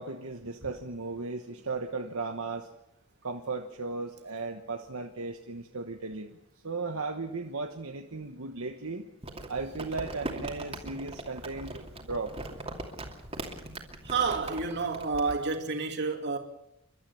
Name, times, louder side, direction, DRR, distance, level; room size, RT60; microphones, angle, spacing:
voice 1, 0.0-2.7 3.2-6.3 6.6-9.0 9.5-12.3, right 3 dB, 70° right, 1.2 m, -36 dB
Crumpling crinkling, 9.2-15.3, right 2 dB, 25° right, 2.7 m, -40 dB
voice 2, 14.0-16.4, right 4 dB, 50° right, 2.7 m, -29 dB
29.5 x 12.5 x 7.0 m
head